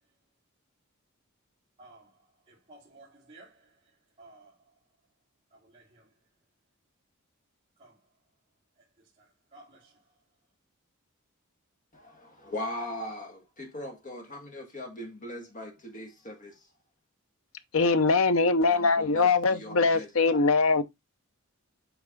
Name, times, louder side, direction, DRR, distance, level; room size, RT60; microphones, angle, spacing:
voice 1, 1.8-2.2 2.5-3.8 4.2-4.6 5.5-6.1 7.8-8.0 9.2-10.0, right 2 dB, 30° right, 2.5 m, -55 dB
voice 2, 11.9-16.5 18.7-20.4, left 1 dB, 35° left, 1.7 m, -40 dB
voice 3, 17.7-20.8, left 4 dB, 70° left, 0.8 m, -22 dB
8.2 x 4.7 x 3.6 m
head